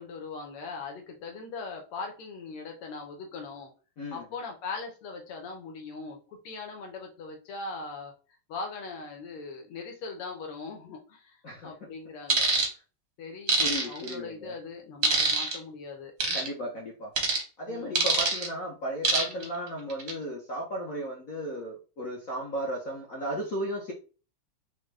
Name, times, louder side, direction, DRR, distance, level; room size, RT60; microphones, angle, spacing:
voice 1, 0.0-3.7 4.1-8.1 8.5-11.4 11.6-12.5 13.2-16.4 17.7-18.1 19.3-19.5, left 4 dB, 85° left, 2 dB, 1.8 m, -40 dB
sound 1, 12.3-12.7 13.5-14.1 15.0-15.6 16.2-16.5 17.2-17.4 18.0-18.5 19.0-19.4 19.9-20.1, right 4 dB, 50° right, 0.8 m, -24 dB
voice 2, 13.6-14.5 16.3-17.1 17.6-23.9, equal, 65° left, -1 dB, 0.8 m, -35 dB
5.0 x 2.2 x 3.3 m, 0.35 s
omnidirectional pair, 2.4 m